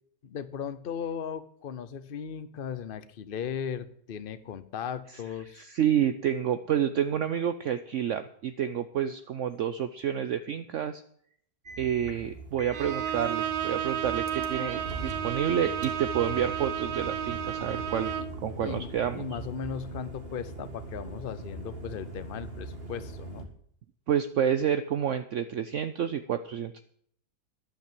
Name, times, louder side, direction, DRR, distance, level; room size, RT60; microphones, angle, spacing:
voice 1, 0.2-5.7 18.2-18.3 18.6-18.9 19.1-23.5, left 8 dB, 45° left, 13 dB, 0.9 m, -37 dB
voice 2, 5.5-11.0 11.8-19.2 24.1-26.8, right 9 dB, 60° right, 10 dB, 0.9 m, -29 dB
sound 1, 11.7-23.4, right 2 dB, 40° right, 2.3 m, -41 dB
Bowed string instrument, 12.7-18.4, right 10 dB, 85° right, 1.6 m, -32 dB
11.5 x 9.1 x 7.5 m, 0.64 s
omnidirectional pair, 1.6 m